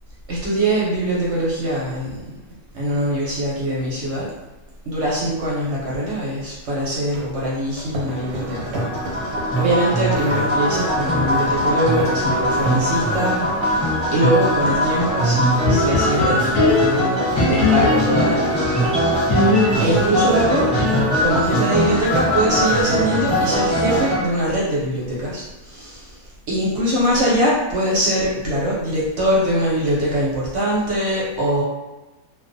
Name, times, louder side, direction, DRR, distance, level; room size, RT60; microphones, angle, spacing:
voice 1, 0.3-2.2 2.7-4.3 4.9-13.4 13.7-19.5 19.8-20.7 21.2-31.6, right 1 dB, 60° right, -5 dB, 0.8 m, -22 dB
sound 1, 6.9-13.7, right 1 dB, 85° right, 1.1 m, -34 dB
sound 2, 8.0-24.2, equal, 30° left, 0.9 m, -21 dB
sound 3, 15.6-18.4 19.3-21.3, left 2 dB, 70° left, 0.9 m, -20 dB
2.4 x 2.2 x 2.5 m, 1.1 s
omnidirectional pair, 1.6 m